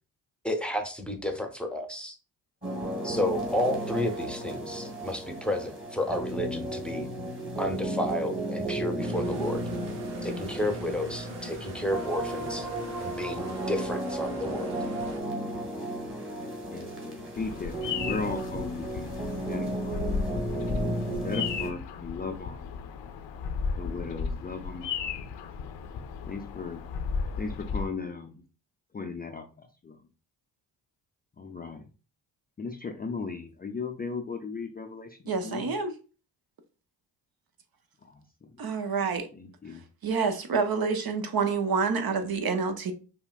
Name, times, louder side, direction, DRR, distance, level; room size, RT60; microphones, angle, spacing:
voice 1, 0.4-2.2 3.0-7.1 7.6-9.7 10.2-12.7 13.0-14.7, left 1 dB, ahead, 0.8 m, -31 dB
sound 1, 2.6-21.7, right 1 dB, 25° right, 1.7 m, -34 dB
sound 2, 9.0-15.2, right 3 dB, 80° right, 0.9 m, -43 dB
voice 2, 16.7-19.1 19.5-20.0 21.2-22.7 23.8-25.1 26.3-26.8 27.4-28.4 28.9-30.0 31.4-31.8 32.6-35.7 38.1-38.2 39.3-39.8, left 4 dB, 20° left, 0.5 m, -37 dB
Bird vocalization bird call bird song, 17.4-27.9, left 5 dB, 60° left, 0.7 m, -35 dB
voice 3, 35.3-35.9 38.6-39.3 40.0-42.9, right 5 dB, 45° right, 0.8 m, -27 dB
5.4 x 2.2 x 2.4 m
hypercardioid pair, 40°, 50 cm